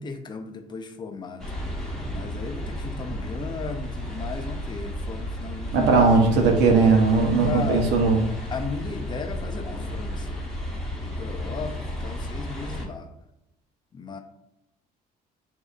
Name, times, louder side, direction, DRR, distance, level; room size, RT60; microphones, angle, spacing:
voice 1, 0.0-1.5 2.1-6.1 7.4-8.0 8.5-10.4 11.0-13.1 13.9-14.2, left 4 dB, 25° left, 5 dB, 0.6 m, -35 dB
sound 1, 1.4-12.9, equal, 5° left, 1.0 m, -33 dB
voice 2, 5.7-8.2, right 4 dB, 85° right, 2 dB, 0.9 m, -18 dB
7.7 x 2.7 x 2.4 m, 0.85 s
cardioid pair, 110°, 17 cm